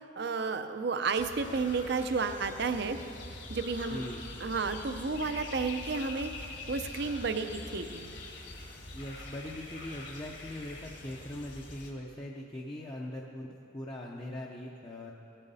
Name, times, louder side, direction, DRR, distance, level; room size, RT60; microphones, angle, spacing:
voice 1, 0.0-3.0 3.5-4.0 4.4-8.1, right 4 dB, 55° right, 9 dB, 0.6 m, -32 dB
sound 1, 1.2-11.9, left 2 dB, 55° left, 1.8 m, -44 dB
voice 2, 3.9-4.2 8.9-15.1, left 1 dB, 20° left, -2 dB, 0.6 m, -41 dB
17.5 x 9.0 x 4.1 m, 2.7 s
head